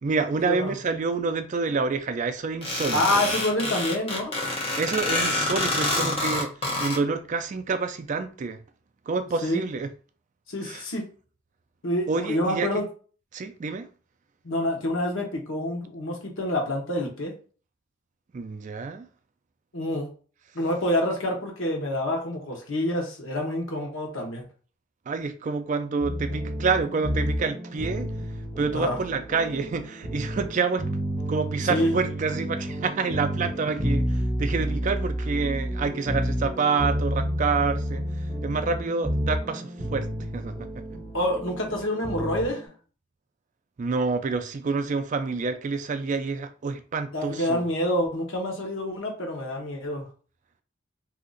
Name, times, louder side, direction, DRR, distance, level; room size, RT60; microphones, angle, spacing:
voice 1, 0.0-3.2 4.8-6.5 6.8-8.6 9.1-9.9 10.6-10.8 12.1-12.7 13.3-13.9 18.3-19.1 25.1-28.1 28.6-30.9 31.3-40.1 40.3-40.8 43.8-47.6, right 4 dB, 40° right, 0.3 m, -28 dB
sound 1, 2.6-7.0, left 2 dB, 30° left, 0.9 m, -27 dB
voice 2, 2.9-4.4 9.4-9.6 10.5-11.0 11.8-12.8 14.4-17.3 19.7-20.1 20.5-24.4 28.7-29.0 31.7-32.0 41.1-42.7 47.1-50.0, left 1 dB, 80° left, 1.1 m, -27 dB
sound 2, 26.0-42.7, equal, 5° left, 1.2 m, -30 dB
2.8 x 2.4 x 3.8 m
head